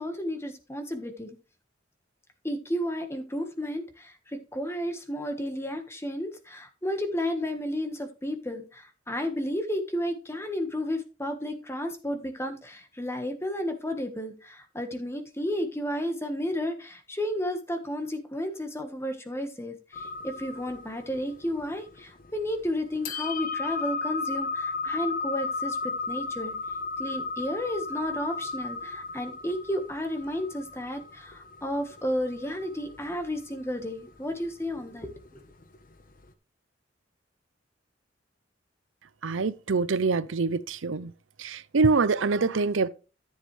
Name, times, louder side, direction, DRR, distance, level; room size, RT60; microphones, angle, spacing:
voice 1, 0.0-1.4 2.4-26.5 27.0-35.4, left 1 dB, 15° left, 1.5 m, -32 dB
sound 1, 19.9-36.3, left 4 dB, 45° left, 1.0 m, -35 dB
voice 2, 39.2-41.1 41.4-42.9, right 4 dB, 85° right, 0.6 m, -25 dB
13.5 x 7.3 x 3.3 m
head